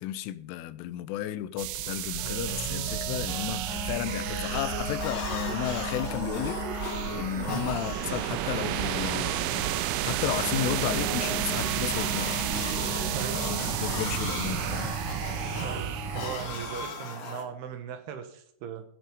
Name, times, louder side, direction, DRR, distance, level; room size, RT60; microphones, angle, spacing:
voice 1, 0.0-12.5 13.3-14.9, left 12 dB, 90° left, 3.3 m, -33 dB
sound 1, 1.6-16.9, right 14 dB, 85° right, 3.0 m, -32 dB
sound 2, 2.2-16.3, left 3 dB, 5° right, 2.3 m, -38 dB
sound 3, 4.7-17.4, left 4 dB, 65° left, 4.1 m, -40 dB
voice 2, 13.1-13.4 15.6-18.8, right 8 dB, 70° right, 2.9 m, -38 dB
16.5 x 6.4 x 5.2 m
omnidirectional pair, 5.6 m